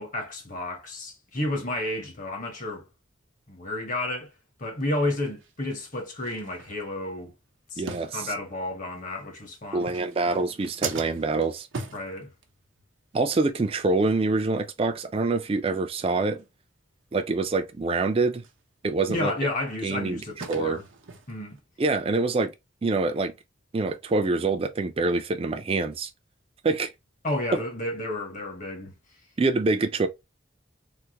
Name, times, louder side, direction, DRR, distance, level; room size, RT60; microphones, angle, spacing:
voice 1, 0.0-2.8 3.5-4.3 4.6-7.3 7.7-7.8 8.1-9.9 11.9-12.3 19.1-20.8 21.3-21.6 27.2-28.9, left 1 dB, 40° left, 1.0 m, -31 dB
sound 1, 5.4-5.5 6.2-7.2 7.9-8.7 9.7-12.9 13.2-13.4 13.7-13.8 14.3-14.4 14.8-14.9 15.3-15.4 15.8-15.9 16.4-16.5 18.4-18.6 19.1-21.6, right 5 dB, 90° right, 0.7 m, -40 dB
voice 2, 7.8-8.3 9.7-11.7 13.1-16.4 17.1-18.4 18.8-19.3 19.8-20.8 21.8-22.5 22.8-23.3 23.7-26.1 26.6-26.9 27.5-27.6 29.4-30.1, right 3 dB, 30° right, 0.4 m, -25 dB
3.4 x 2.1 x 2.8 m
head